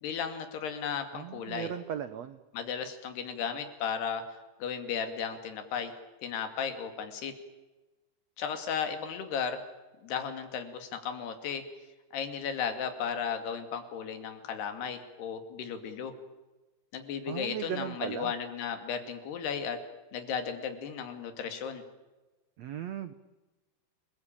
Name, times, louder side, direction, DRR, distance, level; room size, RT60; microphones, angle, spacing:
voice 1, 0.0-1.7 2.5-4.2 4.6-5.9 6.2-7.3 8.4-9.6 10.0-11.6 12.1-16.1 16.9-19.8 20.1-21.8, left 7 dB, 80° left, 7 dB, 4.5 m, -35 dB
voice 2, 1.1-2.4 17.3-18.3 22.6-23.1, right 9 dB, 80° right, 12 dB, 1.5 m, -37 dB
29.5 x 21.0 x 8.9 m, 1.1 s
omnidirectional pair, 4.6 m